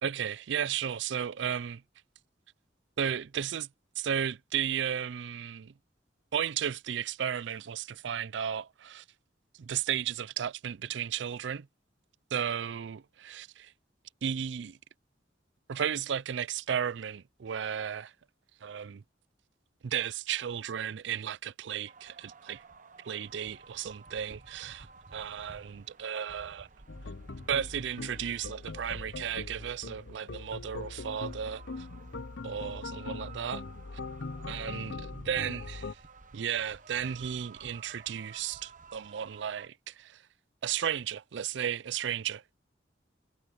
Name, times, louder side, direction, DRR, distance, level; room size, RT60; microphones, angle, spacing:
voice 1, 0.0-1.8 3.0-3.7 4.0-5.7 6.3-9.0 9.5-11.7 12.3-13.7 14.2-14.8 15.7-18.1 18.6-19.0 19.8-22.6 23.0-24.9 25.1-26.7 27.5-31.9 32.4-33.6 34.5-36.0 36.3-40.2 40.6-42.6, right 8 dB, 70° right, 0.4 m, -34 dB
sound 1, 21.9-39.7, right 4 dB, 45° right, 1.0 m, -54 dB
sound 2, 26.9-35.9, left 3 dB, 75° left, 0.9 m, -41 dB
head